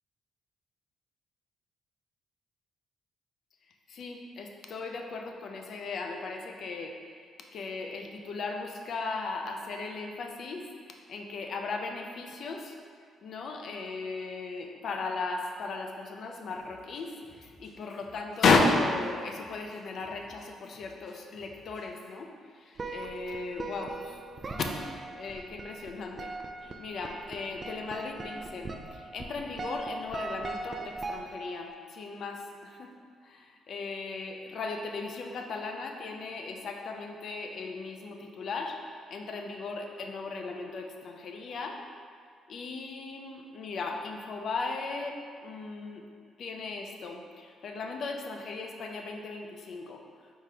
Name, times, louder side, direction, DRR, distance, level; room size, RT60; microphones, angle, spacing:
voice 1, 3.9-6.9 7.5-12.8 13.2-24.2 24.5-26.3 26.6-32.9 33.2-41.8 42.5-45.2 45.4-46.1 46.4-50.0, left 3 dB, 60° left, 2 dB, 0.5 m, -35 dB
Drum kit, 16.6-22.2, left 2 dB, 85° left, 1.2 m, -59 dB
sound 1, 22.8-31.7, right 2 dB, 35° right, 0.3 m, -40 dB
4.6 x 3.6 x 2.8 m, 2.1 s
cardioid pair, 90°, 0 cm